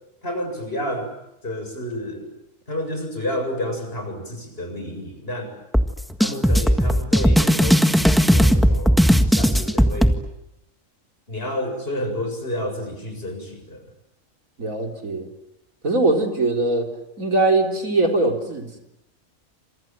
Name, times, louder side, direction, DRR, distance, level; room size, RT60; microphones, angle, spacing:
voice 1, 0.2-1.1 1.4-2.3 2.7-5.5 6.2-10.2 11.3-13.8, left 1 dB, 45° left, 5 dB, 7.8 m, -30 dB
sound 1, 5.7-10.1, equal, ahead, 1.6 m, -17 dB
voice 2, 14.6-15.3 15.8-16.9 17.2-18.8, right 2 dB, 85° right, 3 dB, 4.4 m, -21 dB
29.0 x 27.0 x 7.6 m, 0.85 s
omnidirectional pair, 1.4 m